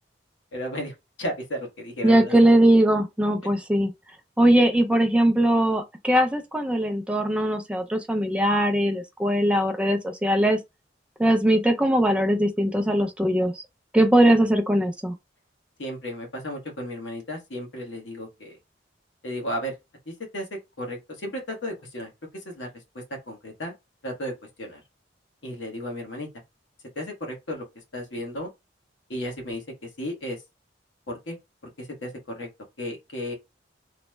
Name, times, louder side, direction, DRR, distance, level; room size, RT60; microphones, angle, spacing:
voice 1, 0.5-2.4 15.8-18.6 19.2-19.7 20.1-22.7 22.9-23.7 24.0-24.3 24.6-24.8 25.4-26.3 26.9-27.6 27.9-28.5 29.1-30.4 31.1-31.4 31.8-32.5 32.8-33.3, equal, 75° left, 1.1 m, -34 dB
voice 2, 2.0-3.9 4.4-10.6 11.2-13.6 13.9-15.1, right 1 dB, 5° right, 0.4 m, -20 dB
3.0 x 2.0 x 3.2 m
head